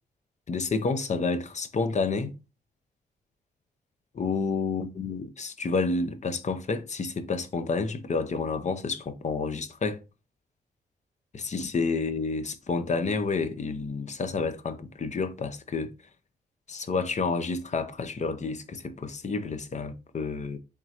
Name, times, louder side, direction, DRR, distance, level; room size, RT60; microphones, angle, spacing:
voice 1, 0.5-2.3 4.1-10.0 11.3-15.9 16.7-20.6, left 4 dB, 40° left, 0.6 m, -29 dB
3.6 x 3.1 x 2.8 m
supercardioid pair, 50°, 18 cm